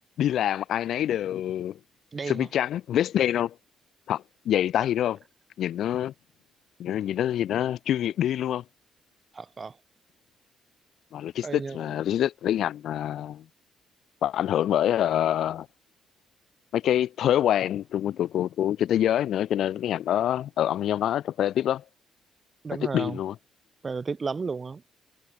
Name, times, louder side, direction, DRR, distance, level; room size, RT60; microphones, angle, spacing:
voice 1, 0.2-1.8 2.3-3.5 4.1-5.2 5.6-6.1 6.8-8.6 11.1-13.4 14.2-15.7 16.7-21.8 22.8-23.4, left 11 dB, 75° left, 0.9 m, -26 dB
voice 2, 2.1-2.5 9.3-9.7 11.4-11.8 22.6-23.2 23.8-24.8, right 4 dB, 35° right, 1.0 m, -33 dB
cardioid pair, 90°, 0 cm